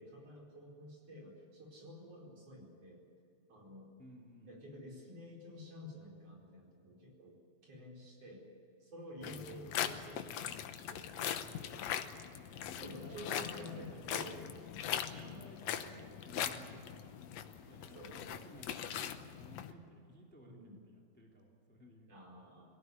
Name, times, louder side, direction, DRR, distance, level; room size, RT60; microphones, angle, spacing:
voice 1, 0.0-3.0 3.5-3.9 4.4-7.4 7.6-8.5 8.8-11.3 11.7-11.9 12.7-14.4 15.1-15.4 17.9-18.2 20.4-20.8 22.1-22.8, left 1 dB, 55° right, -1 dB, 5.7 m, -51 dB
voice 2, 4.0-4.5 11.2-11.6 12.4-22.1, equal, 5° left, -1 dB, 2.6 m, -57 dB
sound 1, 9.2-19.7, left 9 dB, 70° left, 2.1 m, -41 dB
23.0 x 17.5 x 9.7 m, 2.4 s
omnidirectional pair, 3.3 m